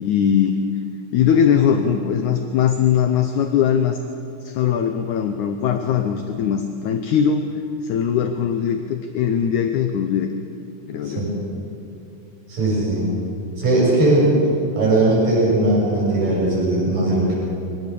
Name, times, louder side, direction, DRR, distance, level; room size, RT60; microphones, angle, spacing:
voice 1, 0.0-0.6 1.1-4.0 4.4-7.4 7.8-10.3 10.9-11.3, left 8 dB, 70° left, 6 dB, 2.2 m, -20 dB
voice 2, 12.5-13.1 13.6-14.4 14.8-17.4, right 2 dB, 80° right, -5 dB, 8.6 m, -18 dB
24.5 x 18.5 x 6.9 m, 2.7 s
omnidirectional pair, 3.9 m